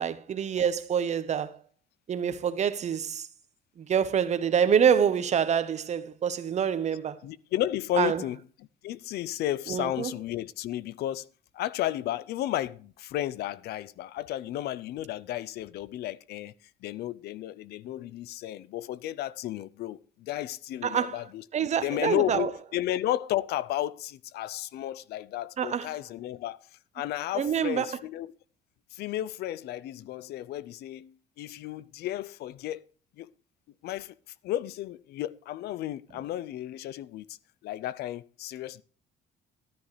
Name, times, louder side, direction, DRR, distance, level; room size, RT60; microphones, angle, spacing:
voice 1, 0.0-1.5 2.1-3.3 3.8-7.2 8.0-8.2 9.7-10.1 20.8-21.1 21.5-22.5 25.6-25.8 27.4-27.9, right 8 dB, 45° right, 1.0 m, -26 dB
voice 2, 7.2-11.3 11.5-16.5 16.8-26.6 26.9-28.3 28.9-32.8 33.2-33.3 33.8-34.2 34.4-37.4 37.6-38.8, left 13 dB, 70° left, 0.6 m, -33 dB
13.0 x 10.0 x 3.2 m
cardioid pair, 110°, 17 cm